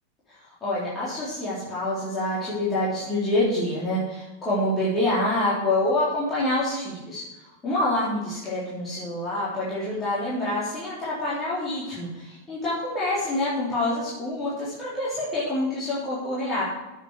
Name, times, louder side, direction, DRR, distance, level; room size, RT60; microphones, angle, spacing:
voice 1, 0.6-7.2 7.6-16.6, left 1 dB, 20° left, -9 dB, 3.7 m, -26 dB
9.0 x 7.6 x 6.8 m, 1.0 s
figure-of-eight pair, 90°, 0 cm